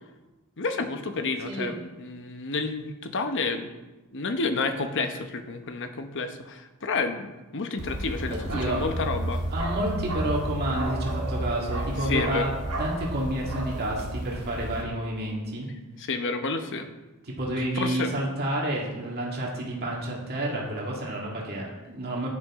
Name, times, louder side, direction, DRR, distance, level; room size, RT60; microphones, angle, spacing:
voice 1, 0.6-3.7 4.1-9.4 12.0-12.5 16.0-16.9 17.6-18.1, left 4 dB, 55° left, 7 dB, 1.0 m, -30 dB
Bark, 7.8-14.8, right 1 dB, 80° right, 2.3 m, -31 dB
voice 2, 8.3-8.8 9.5-12.5 12.8-15.7 17.2-22.3, right 1 dB, 45° right, -3 dB, 2.1 m, -30 dB
10.5 x 9.5 x 3.7 m, 1.1 s
head